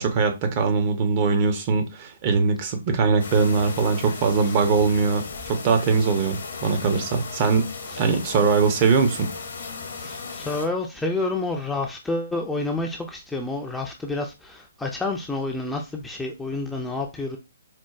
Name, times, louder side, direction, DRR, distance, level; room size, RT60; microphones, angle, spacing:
voice 1, 0.0-5.2 5.5-7.7 8.0-9.3, right 5 dB, 35° right, 0.6 m, -21 dB
sound 1, 3.2-10.7, left 4 dB, 65° left, 0.9 m, -36 dB
voice 2, 10.0-17.4, left 2 dB, 5° left, 0.4 m, -29 dB
4.3 x 2.2 x 2.3 m
figure-of-eight pair, 130°, 0 cm